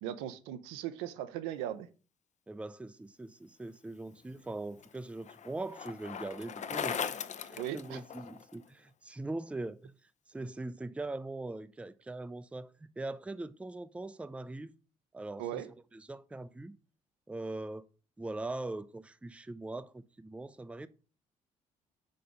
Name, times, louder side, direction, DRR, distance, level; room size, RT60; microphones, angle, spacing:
voice 1, 0.0-1.9 7.6-8.0 15.4-15.7, right 12 dB, 75° right, 0.5 m, -38 dB
voice 2, 2.5-9.9 10.3-14.7 15.1-15.6 15.9-16.8 17.3-17.9 18.2-20.9, right 2 dB, 5° right, 0.4 m, -41 dB
Bicycle, 4.1-8.6, left 7 dB, 40° left, 0.6 m, -39 dB
4.6 x 4.0 x 5.1 m
hypercardioid pair, 45°, 19 cm